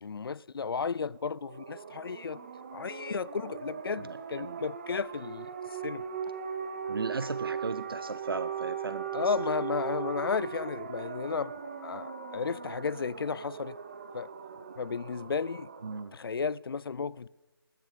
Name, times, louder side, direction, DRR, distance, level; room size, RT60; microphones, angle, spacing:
voice 1, 0.0-2.4 2.7-5.5 5.8-6.0 9.1-11.5 11.8-13.8 14.1-14.3 14.8-15.7 16.1-17.3, left 5 dB, 65° left, 0.4 m, -33 dB
sound 1, 1.3-16.0, right 7 dB, 30° right, 1.0 m, -39 dB
voice 2, 4.0-4.6 6.9-9.1 15.8-16.2, right 4 dB, 65° right, 0.8 m, -36 dB
20.5 x 10.5 x 6.7 m
figure-of-eight pair, 170°, 13 cm